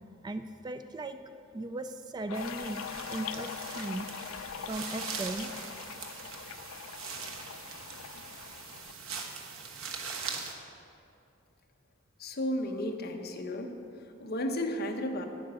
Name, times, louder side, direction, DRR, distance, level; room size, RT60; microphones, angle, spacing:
voice 1, 0.2-1.2 1.5-2.8 3.1-4.1 4.7-5.5, right 2 dB, 20° right, 10 dB, 0.3 m, -37 dB
sound 1, 2.3-8.9, left 9 dB, 75° left, 0.3 m, -42 dB
sound 2, 2.3-10.5, right 5 dB, 85° right, 1.2 m, -41 dB
voice 2, 12.2-13.7 14.2-15.2, left 1 dB, 50° left, 4 dB, 1.0 m, -33 dB
9.5 x 9.2 x 6.2 m, 2.6 s
head